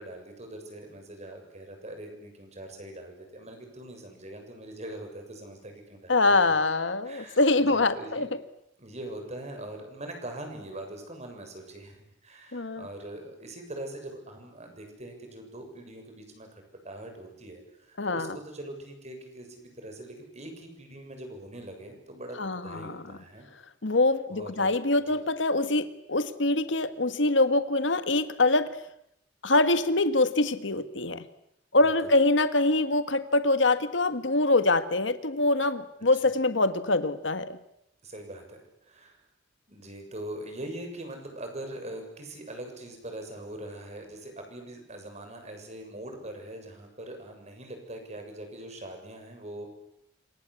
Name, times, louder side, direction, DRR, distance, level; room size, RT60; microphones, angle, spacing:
voice 1, 0.0-6.4 7.0-8.3 8.8-23.5 24.3-24.7 25.1-25.2 31.8-32.2 36.1-36.3 38.0-39.2 39.7-49.7, right 1 dB, 35° right, 5 dB, 7.2 m, -42 dB
voice 2, 6.1-8.3 12.5-12.9 18.0-18.3 22.4-23.0 23.8-28.7 29.4-31.2 31.7-37.6, left 2 dB, 70° left, 12 dB, 1.6 m, -24 dB
27.5 x 24.5 x 8.4 m, 0.78 s
head